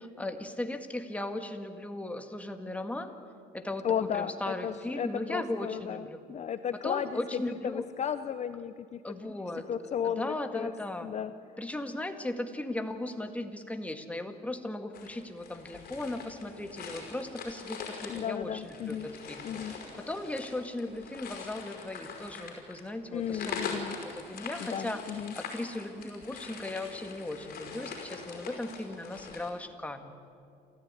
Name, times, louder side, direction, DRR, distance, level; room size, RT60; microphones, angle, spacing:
voice 1, 0.0-3.1 3.5-6.2 6.8-7.9 9.0-9.7 10.0-11.1 11.6-23.9 24.1-25.0 25.4-30.1, left 1 dB, 10° left, 6 dB, 1.8 m, -37 dB
voice 2, 3.8-9.0 9.7-10.7 11.0-11.3 18.1-19.1 19.4-19.7 23.1-24.0 24.6-25.3, left 8 dB, 40° left, 11 dB, 0.7 m, -34 dB
sound 1, 14.9-29.5, left 5 dB, 60° left, 5.3 m, -43 dB
28.5 x 14.0 x 9.7 m, 2.5 s
cardioid pair, 110°, 17 cm